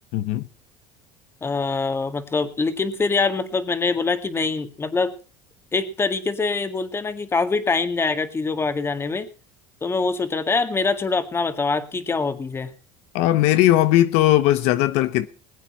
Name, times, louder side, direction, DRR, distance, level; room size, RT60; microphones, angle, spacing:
voice 1, 0.1-0.5 13.1-15.3, left 14 dB, 70° left, 0.9 m, -18 dB
voice 2, 1.4-5.1 5.7-9.3 9.8-12.7, left 4 dB, 20° left, 1.9 m, -24 dB
21.0 x 8.8 x 4.6 m
supercardioid pair, 105°, 12 cm